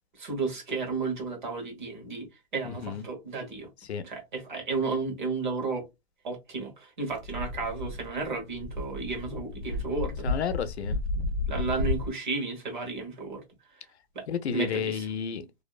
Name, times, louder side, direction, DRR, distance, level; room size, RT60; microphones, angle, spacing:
voice 1, 0.2-2.3 2.5-3.7 4.0-5.9 6.2-10.2 11.5-13.4 14.1-14.2 14.5-15.1, right 4 dB, 45° right, 1.2 m, -33 dB
voice 2, 2.6-3.0 3.8-4.0 10.2-11.0 14.3-15.5, left 7 dB, 85° left, 0.6 m, -31 dB
sound 1, 7.1-12.1, left 2 dB, 70° right, 0.8 m, -32 dB
2.7 x 2.0 x 2.3 m
hypercardioid pair, 175°, 32 cm